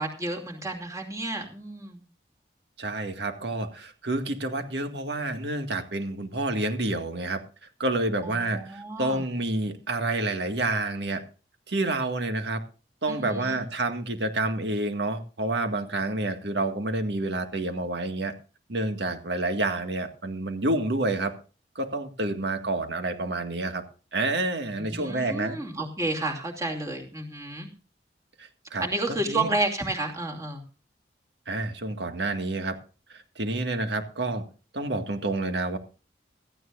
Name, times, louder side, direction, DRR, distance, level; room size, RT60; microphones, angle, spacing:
voice 1, 0.0-2.0 8.2-9.2 13.1-13.6 24.8-27.7 28.8-30.6, right 2 dB, 20° right, 2.7 m, -31 dB
voice 2, 2.8-7.4 7.8-11.2 11.7-12.6 13.0-18.3 18.7-21.3 21.8-23.8 24.1-25.6 28.4-28.9 29.2-29.5 31.5-32.8 33.1-34.5 34.7-35.8, right 2 dB, 75° right, 1.9 m, -29 dB
17.0 x 14.0 x 2.6 m
head